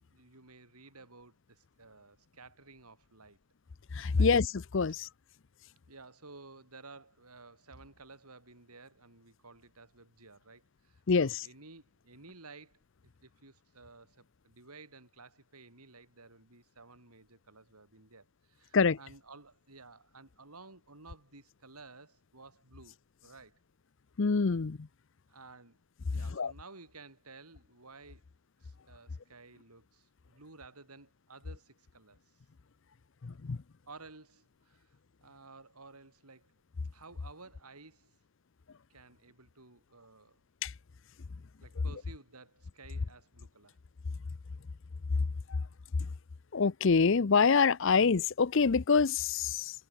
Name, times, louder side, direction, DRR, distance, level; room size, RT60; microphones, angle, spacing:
voice 1, 0.1-3.4 4.1-4.3 4.9-5.0 5.9-12.8 13.2-23.6 25.3-25.8 26.1-28.2 28.6-32.2 33.9-36.5 36.9-38.2 38.9-40.4 41.6-43.8, right 3 dB, 90° right, 5.3 m, -54 dB
voice 2, 4.0-4.5 4.7-5.1 11.1-11.3 18.7-19.0 24.2-24.8 26.4-26.5 33.4-33.6 40.6-40.7 46.5-49.7, left 5 dB, 55° left, 0.6 m, -25 dB
head